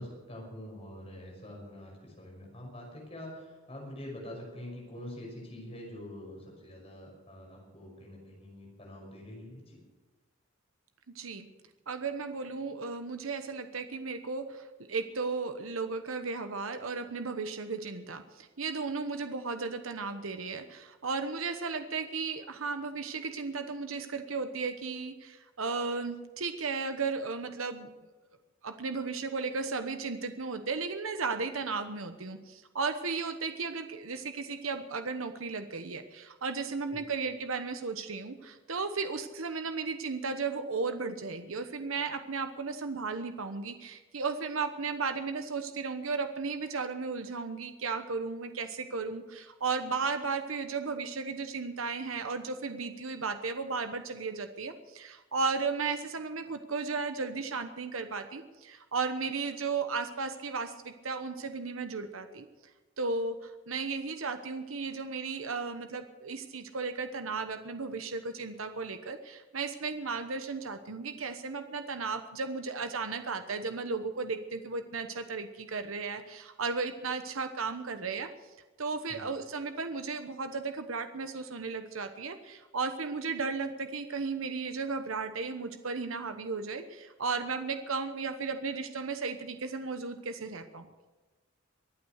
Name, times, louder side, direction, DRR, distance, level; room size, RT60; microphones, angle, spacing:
voice 1, 0.0-9.8 36.9-37.0 79.1-79.2, left 1 dB, 30° left, -1 dB, 5.6 m, -45 dB
voice 2, 11.1-11.5 11.9-27.9 28.6-62.5 63.0-78.3 78.8-90.9, right 4 dB, 80° right, 8 dB, 1.0 m, -35 dB
23.5 x 8.6 x 6.5 m, 1.2 s
head